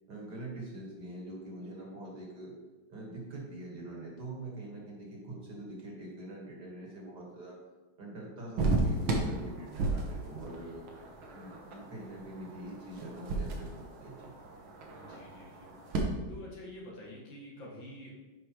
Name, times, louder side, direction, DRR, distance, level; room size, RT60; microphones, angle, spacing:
voice 1, 0.1-2.5 2.9-7.6 8.0-10.8 11.3-14.3, right 1 dB, 55° right, -3 dB, 2.2 m, -44 dB
sound 1, 8.6-16.0, right 2 dB, 80° right, 1.9 m, -35 dB
voice 2, 14.9-15.7 16.3-18.2, left 1 dB, 70° left, -3 dB, 2.2 m, -47 dB
9.9 x 4.9 x 3.0 m, 1.2 s
omnidirectional pair, 2.2 m